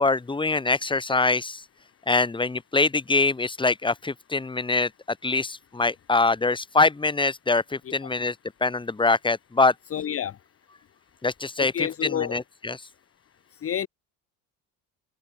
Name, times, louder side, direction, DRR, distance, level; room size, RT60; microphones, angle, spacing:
voice 1, 0.0-1.6 2.1-8.3 8.6-9.7 11.2-12.8, left 3 dB, 10° left, 2.8 m, -24 dB
voice 2, 9.9-10.3 11.6-12.4 13.6-13.9, left 9 dB, 35° left, 1.6 m, -29 dB
open air
cardioid pair, 135°, 38 cm